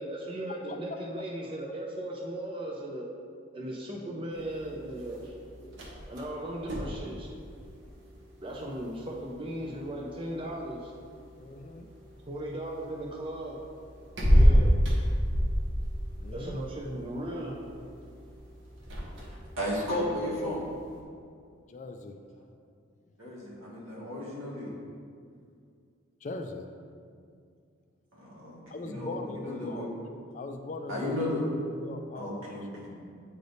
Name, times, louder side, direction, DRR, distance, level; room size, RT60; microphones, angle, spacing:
voice 1, 0.0-3.1 3.5-5.4 6.1-7.3 8.4-10.9 12.3-13.6 14.1-14.7 16.3-17.6, right 1 dB, 25° right, -2 dB, 0.5 m, -37 dB
sound 1, 4.3-21.0, equal, 60° right, 1.0 m, -30 dB
voice 2, 11.4-11.9 16.2-16.7 21.7-22.2 26.2-26.7 28.7-29.9 30.3-31.3 31.7-32.9, left 2 dB, 35° left, 6 dB, 0.3 m, -40 dB
voice 3, 19.3-20.6 23.2-24.7 28.1-29.9 30.9-31.4 32.1-32.9, left 1 dB, 80° right, -5 dB, 1.6 m, -34 dB
8.9 x 3.4 x 3.9 m, 2.3 s
head